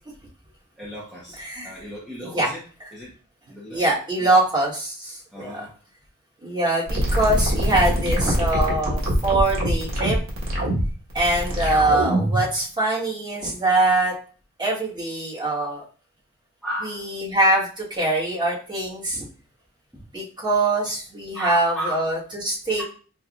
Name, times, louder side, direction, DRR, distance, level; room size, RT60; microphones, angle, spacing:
voice 1, 0.8-2.6 2.9-3.1 3.5-3.8 4.2-4.4 5.3-5.7 16.6-17.0 19.9-20.0 21.3-22.1 22.8-22.9, right 1 dB, ahead, -7 dB, 0.6 m, -34 dB
voice 2, 1.4-1.7 2.2-2.5 2.8-2.9 3.7-5.7 6.4-10.2 11.1-14.1 14.6-15.8 16.8-19.2 20.1-22.8, right 2 dB, 20° right, -6 dB, 1.3 m, -23 dB
sound 1, 6.9-12.5, equal, 70° right, 1.3 m, -23 dB
5.5 x 2.3 x 2.4 m, 0.39 s
head